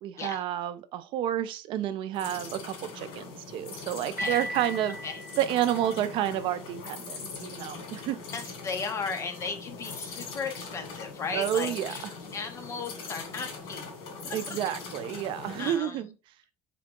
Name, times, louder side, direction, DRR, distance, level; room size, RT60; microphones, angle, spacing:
voice 1, 0.0-5.0 5.4-8.2 11.3-11.9 14.3-16.1, right 11 dB, 65° right, 0.4 m, -30 dB
sound 1, 2.1-15.8, left 4 dB, 70° left, 1.7 m, -41 dB
voice 2, 4.2-4.5 5.0-5.2 8.3-13.9 14.2-14.6 15.6-16.1, left 5 dB, 30° left, 0.8 m, -36 dB
Piano, 4.2-6.1, equal, 10° right, 0.7 m, -37 dB
3.7 x 3.4 x 3.7 m
cardioid pair, 140°, 9 cm